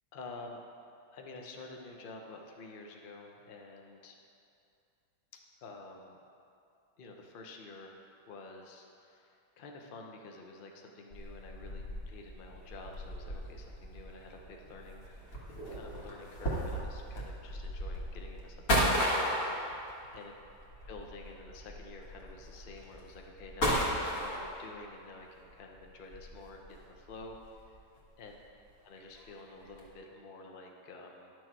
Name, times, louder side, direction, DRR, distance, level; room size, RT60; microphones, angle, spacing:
voice 1, 0.1-0.6 1.1-4.2 5.3-6.2 7.0-8.0 8.3-15.1 15.5-19.6 20.1-20.3 20.9-27.8 28.2-28.4 28.8-31.3, left 3 dB, 70° left, 1 dB, 0.5 m, -49 dB
sound 1, 11.1-24.8 25.5-28.0 28.2-28.4 28.9-29.2 29.6-29.9, equal, 50° left, 1.9 m, -36 dB
11.0 x 6.4 x 4.5 m, 2.6 s
omnidirectional pair, 2.1 m